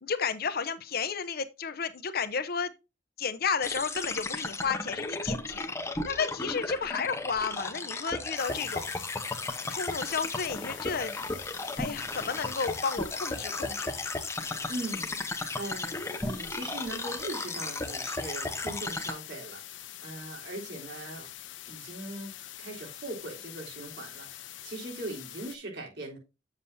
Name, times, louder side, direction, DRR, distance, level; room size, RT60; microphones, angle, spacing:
voice 1, 0.0-2.7 3.2-5.7 6.0-8.9 9.7-11.3 11.8-13.9, left 5 dB, 55° left, 0.8 m, -32 dB
sound 1, 3.6-19.1, left 2 dB, 15° left, 0.9 m, -35 dB
sound 2, 8.4-25.6, left 13 dB, 90° left, 0.7 m, -45 dB
voice 2, 14.4-21.3 21.7-22.3 22.6-26.2, right 1 dB, 65° right, 3.6 m, -40 dB
8.3 x 7.4 x 2.7 m
head